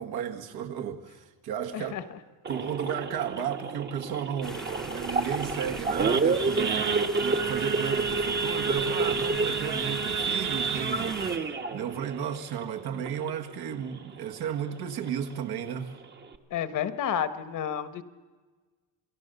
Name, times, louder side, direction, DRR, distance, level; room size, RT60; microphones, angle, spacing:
voice 1, 0.0-1.9 2.5-15.9, right 8 dB, 70° right, 1.9 m, -34 dB
Idling / Accelerating revving vroom / Sawing, 2.4-13.5 13.9-14.1 14.4-14.5 15.0-15.2 15.7-15.8 16.0-16.3, right 4 dB, 25° right, 1.1 m, -29 dB
sound 1, 4.4-11.4, left 1 dB, ahead, 0.9 m, -42 dB
voice 2, 16.5-18.0, left 9 dB, 50° left, 1.2 m, -30 dB
27.5 x 19.0 x 6.8 m
cardioid pair, 140°, 39 cm